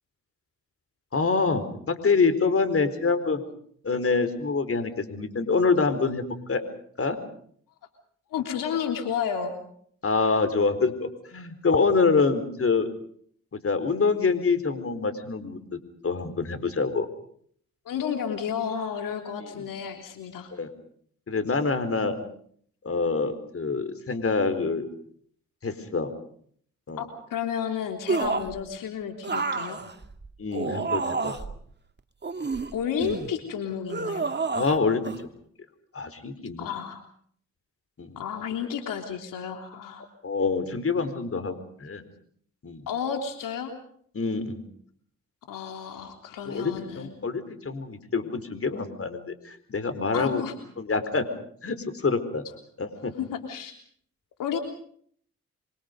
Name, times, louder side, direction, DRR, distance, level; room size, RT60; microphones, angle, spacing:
voice 1, 1.1-3.4 3.8-6.6 7.0-7.2 10.0-12.9 13.5-15.8 16.0-17.1 19.5-19.6 20.5-20.7 21.3-22.2 22.8-24.9 25.6-26.1 26.9-27.0 30.4-31.4 34.5-35.3 35.9-36.7 38.0-38.2 40.2-42.0 42.6-42.9 44.1-44.6 46.4-50.4 50.8-51.3 51.6-52.4 52.8-53.1, left 4 dB, 45° left, 11 dB, 4.4 m, -26 dB
voice 2, 8.3-9.5 17.8-20.5 27.0-29.8 32.7-34.3 36.6-37.0 38.1-40.0 42.9-43.7 45.5-47.1 50.1-50.5 53.2-53.7 54.4-54.6, left 8 dB, 80° left, 4 dB, 3.4 m, -31 dB
sound 1, 28.1-28.6 29.2-31.6 32.2-33.3 33.9-34.8 35.0-35.2, right 4 dB, 35° right, 2.3 m, -29 dB
28.0 x 24.0 x 5.3 m, 0.62 s
supercardioid pair, 55°, 32 cm